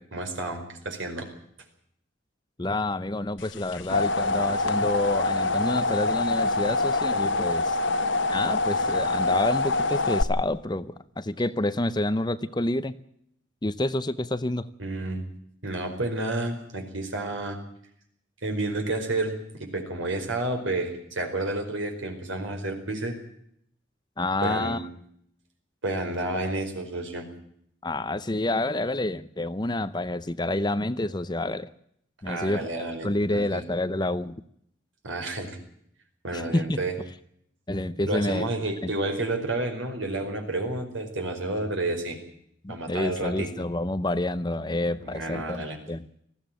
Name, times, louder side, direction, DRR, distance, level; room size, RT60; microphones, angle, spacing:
voice 1, 0.1-1.3 14.8-15.2 15.6-17.6 18.4-19.3 19.6-23.2 24.4-24.8 25.8-27.3 32.3-33.6 35.0-35.6 36.2-37.0 38.1-42.2 42.7-43.5 45.0-45.8, right 2 dB, 85° right, 5 dB, 4.9 m, -30 dB
voice 2, 2.6-7.8 8.3-13.0 13.6-14.7 24.2-24.8 27.8-31.7 32.2-34.4 36.3-36.8 37.7-38.4 38.8-38.9 42.6-46.1, left 2 dB, 20° left, 14 dB, 0.7 m, -28 dB
sound 1, 3.5-10.2, left 2 dB, 75° left, 1.3 m, -25 dB
20.0 x 15.0 x 9.1 m, 0.71 s
head